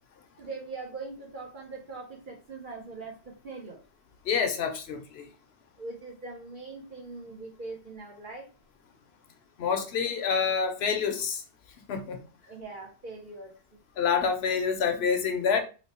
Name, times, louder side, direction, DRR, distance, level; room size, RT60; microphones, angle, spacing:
voice 1, 0.4-3.8 5.8-8.5 12.5-13.6, right 3 dB, 55° right, -1 dB, 0.9 m, -41 dB
voice 2, 4.3-5.3 9.6-11.4 11.9-12.2 14.0-15.6, left 6 dB, 75° left, 6 dB, 0.9 m, -27 dB
3.1 x 2.0 x 4.0 m, 0.34 s
omnidirectional pair, 1.1 m